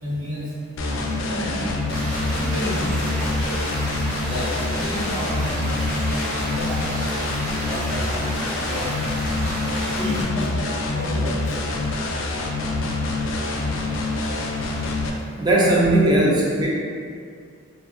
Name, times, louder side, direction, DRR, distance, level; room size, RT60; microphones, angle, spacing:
voice 1, 0.0-0.5 0.8-1.9 2.4-3.0 4.2-6.0 6.4-7.0 7.6-8.0 8.7-8.8 10.0-11.7, left 1 dB, 65° right, -10 dB, 1.0 m, -31 dB
sound 1, 0.8-15.1, left 2 dB, 65° left, 0.3 m, -26 dB
sound 2, 1.9-10.2, right 1 dB, 85° right, 0.8 m, -32 dB
voice 2, 15.4-16.7, right 1 dB, 20° right, -3 dB, 0.3 m, -18 dB
2.6 x 2.4 x 2.5 m, 2.2 s
head